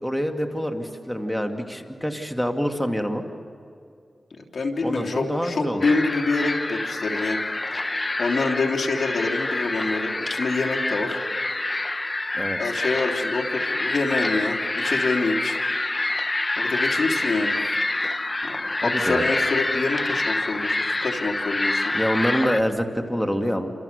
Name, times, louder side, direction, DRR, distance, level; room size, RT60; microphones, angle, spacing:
voice 1, 0.0-3.2 4.8-5.9 12.4-12.6 18.8-19.2 21.9-23.7, equal, 5° left, 4 dB, 2.5 m, -26 dB
voice 2, 4.4-7.4 8.2-11.2 12.6-15.6 16.6-17.6 18.4-21.9, left 3 dB, 70° left, 1 dB, 3.2 m, -26 dB
sound 1, 5.8-22.6, left 2 dB, 35° left, 1.2 m, -26 dB
28.5 x 27.5 x 6.8 m, 2.4 s
cardioid pair, 55°, 0 cm